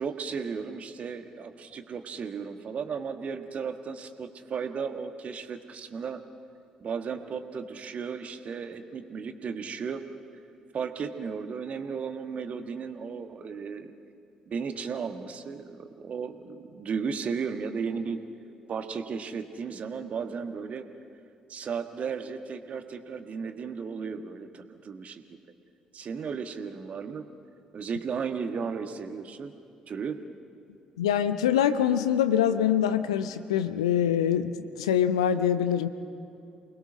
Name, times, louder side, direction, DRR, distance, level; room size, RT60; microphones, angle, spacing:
voice 1, 0.0-6.2 6.8-10.1 10.7-13.9 14.5-18.2 18.7-20.8 21.5-25.4 25.9-27.3 27.7-29.5 29.9-30.2, right 6 dB, 45° right, 7 dB, 1.5 m, -35 dB
voice 2, 31.0-35.9, left 9 dB, 75° left, 11 dB, 0.7 m, -24 dB
28.5 x 20.5 x 6.3 m, 2.6 s
figure-of-eight pair, 45°, 3 cm